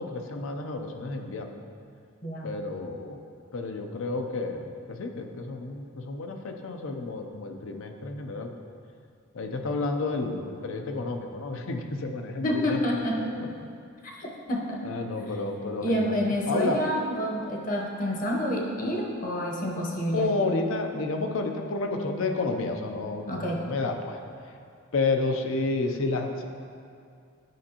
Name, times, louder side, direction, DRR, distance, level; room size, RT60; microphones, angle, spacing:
voice 1, 0.0-1.5 2.4-3.2 3.5-4.7 5.0-8.5 9.3-12.8 13.2-13.5 14.8-16.1 16.5-16.8 20.1-24.2 24.9-26.4, left 3 dB, 75° left, 4 dB, 0.6 m, -30 dB
voice 2, 2.2-2.6 12.4-13.3 14.2-14.8 15.8-20.3 23.3-23.6, equal, 40° left, -1 dB, 0.9 m, -28 dB
9.2 x 5.3 x 2.9 m, 2.4 s
head